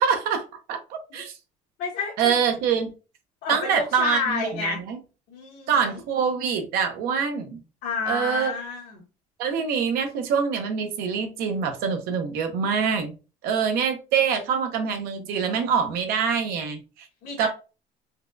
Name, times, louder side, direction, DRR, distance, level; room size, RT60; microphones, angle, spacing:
voice 1, 0.0-1.3 2.2-2.9 3.5-5.0 5.7-7.6 8.1-8.5 9.4-13.1 13.4-17.1 17.4-17.5, right 6 dB, 75° right, 0.7 m, -25 dB
voice 2, 1.8-2.3 3.4-4.8 5.3-6.0 7.8-9.0 17.2-17.5, left 5 dB, 70° left, 1.1 m, -29 dB
4.1 x 2.3 x 2.5 m
cardioid pair, 135°, 16 cm